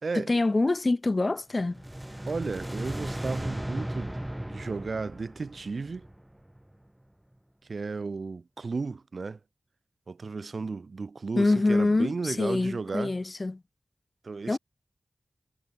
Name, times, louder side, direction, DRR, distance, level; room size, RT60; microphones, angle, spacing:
voice 1, 0.2-1.8 11.4-13.6 14.5-14.6, left 2 dB, 40° left, 3.8 m, -25 dB
sound 1, 1.6-6.8, right 1 dB, 10° right, 7.0 m, -36 dB
voice 2, 2.2-4.2 4.4-6.1 7.7-9.4 10.1-13.2 14.2-14.6, right 4 dB, 70° right, 3.0 m, -34 dB
wide cardioid pair, 60°, 0 cm